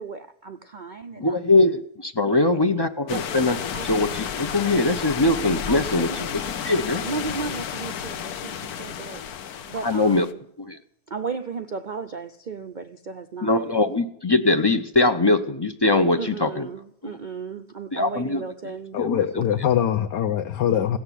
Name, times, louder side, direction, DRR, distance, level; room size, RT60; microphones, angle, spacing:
voice 1, 0.0-1.5 3.1-3.2 3.7-3.9 5.7-6.2 7.0-9.2 9.7-10.4 11.1-13.6 16.2-19.0, right 5 dB, 75° right, 0.4 m, -35 dB
voice 2, 1.2-7.0 9.8-10.3 10.6-10.8 13.4-16.7 17.0-17.2 17.9-18.4 19.0-19.5, left 2 dB, 30° left, 0.5 m, -22 dB
sound 1, 3.1-10.3, left 8 dB, 65° left, 1.3 m, -32 dB
voice 3, 18.9-21.0, left 9 dB, 90° left, 1.4 m, -23 dB
17.0 x 6.6 x 9.8 m
omnidirectional pair, 1.8 m